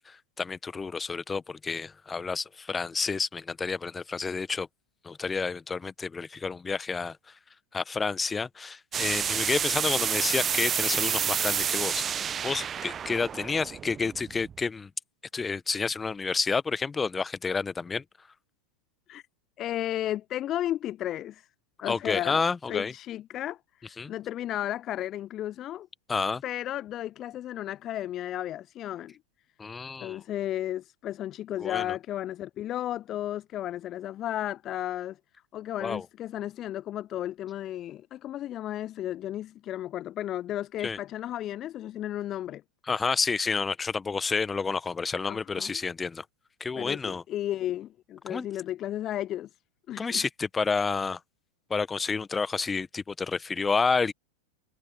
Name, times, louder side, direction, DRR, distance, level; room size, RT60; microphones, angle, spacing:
voice 1, 0.0-4.7 5.0-7.2 7.7-12.1 12.4-14.9 15.3-18.0 21.9-22.9 24.0-24.1 26.1-26.4 29.6-30.2 31.6-31.8 35.8-36.0 40.8-41.0 42.9-46.2 46.6-47.2 48.3-48.5 50.0-51.2 51.7-54.1, left 4 dB, 15° left, 1.4 m, -30 dB
sound 1, 8.9-14.6, right 8 dB, 25° right, 1.0 m, -29 dB
voice 2, 19.6-21.5 21.8-22.4 22.7-25.9 26.4-29.2 30.0-35.2 35.5-42.6 45.3-45.8 46.8-49.5 49.9-50.2, left 12 dB, 30° left, 0.4 m, -34 dB
figure-of-eight pair, 90°, 0 cm